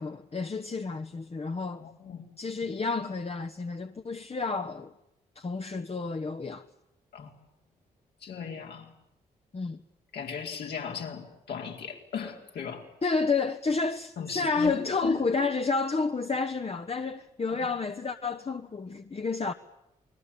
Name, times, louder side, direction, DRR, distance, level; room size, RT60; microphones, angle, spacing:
voice 1, 0.0-1.8 2.4-4.9 5.3-6.6 9.5-9.8 13.0-19.5, left 4 dB, 35° left, 1.4 m, -30 dB
voice 2, 1.7-2.2 7.1-7.3 8.2-8.9 10.1-12.9 14.2-14.8 15.0-15.4 17.5-17.7, left 7 dB, 70° left, 4.5 m, -37 dB
29.0 x 21.0 x 8.6 m
hypercardioid pair, 45°, 18 cm